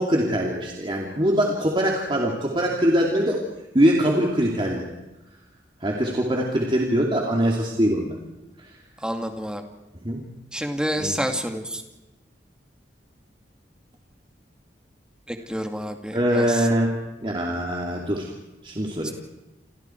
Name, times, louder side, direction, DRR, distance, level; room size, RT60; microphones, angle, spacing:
voice 1, 0.0-3.4 3.7-4.9 5.8-8.2 10.0-10.2 11.0-11.2 16.1-18.3 18.6-19.1, equal, 30° right, -1 dB, 2.8 m, -23 dB
voice 2, 9.0-9.6 10.5-11.8 15.3-16.7 19.0-19.1, equal, 5° right, 4 dB, 2.2 m, -29 dB
28.5 x 28.0 x 4.6 m, 1.0 s
head